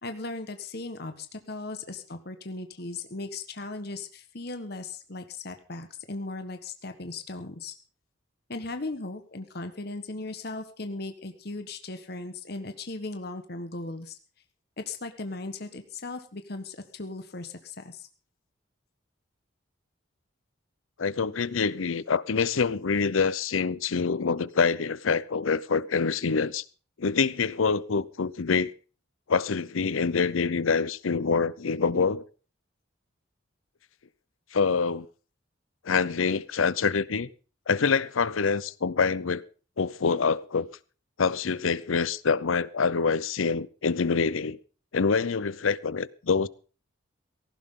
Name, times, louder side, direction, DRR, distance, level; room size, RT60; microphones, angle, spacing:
voice 1, 0.0-7.7 8.5-14.2 14.8-18.1, left 2 dB, 50° left, 8 dB, 1.3 m, -37 dB
voice 2, 21.0-26.6 27.0-28.7 29.3-32.2 34.5-35.1 35.8-37.3 37.7-39.4 39.8-40.7 41.2-44.6 44.9-46.5, left 5 dB, 90° left, 20 dB, 0.7 m, -26 dB
17.5 x 15.0 x 3.8 m, 0.36 s
head